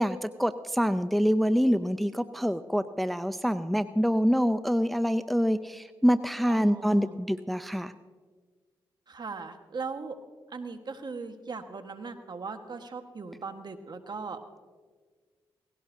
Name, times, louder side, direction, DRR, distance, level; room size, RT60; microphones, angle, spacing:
voice 1, 0.0-7.9, equal, ahead, 12 dB, 0.5 m, -26 dB
voice 2, 6.5-7.1 9.1-10.1 10.5-14.4, right 4 dB, 50° right, 7 dB, 1.4 m, -39 dB
18.0 x 16.5 x 2.7 m, 1.5 s
supercardioid pair, 50°, 10 cm